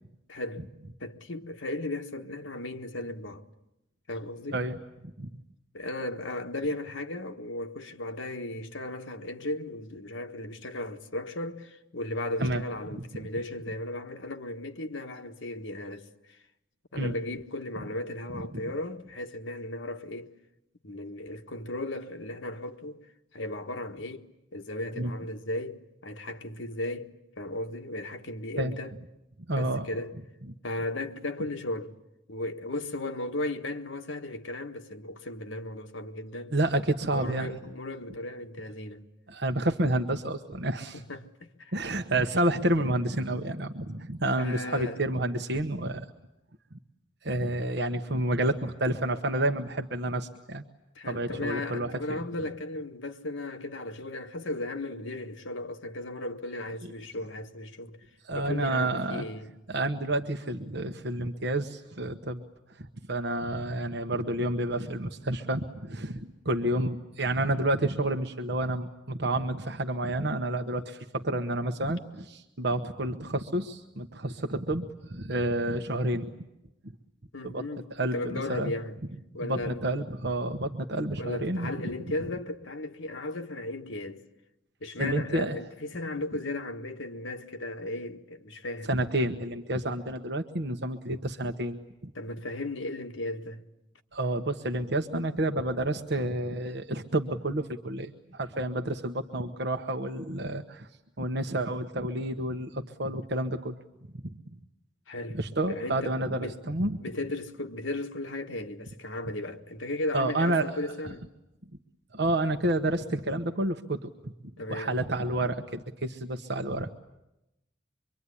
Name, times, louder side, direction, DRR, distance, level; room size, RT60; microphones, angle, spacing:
voice 1, 0.3-0.6 1.0-3.4 4.1-4.6 5.7-16.4 16.9-20.3 20.8-23.0 23.3-24.2 24.5-28.9 29.5-30.1 30.6-31.9 32.3-36.5 37.1-39.0 40.9-41.8 44.4-45.0 50.9-58.0 58.3-59.5 77.3-79.0 79.3-79.8 81.2-84.2 84.8-88.9 92.1-93.6 105.1-105.4 105.7-106.6 107.0-111.2 114.6-115.0, left 2 dB, 75° left, 1.6 m, -36 dB
voice 2, 29.5-29.9 36.5-37.6 39.3-41.0 41.7-46.1 47.2-50.6 51.0-52.2 58.2-59.2 59.7-62.4 62.8-76.3 77.4-77.6 77.9-78.7 79.4-81.8 85.0-85.6 88.9-91.8 92.0-92.1 94.1-100.9 101.2-103.7 105.3-107.0 110.1-110.7 112.1-114.3 114.7-117.0, right 1 dB, 55° right, 1.2 m, -29 dB
25.0 x 24.5 x 9.9 m
head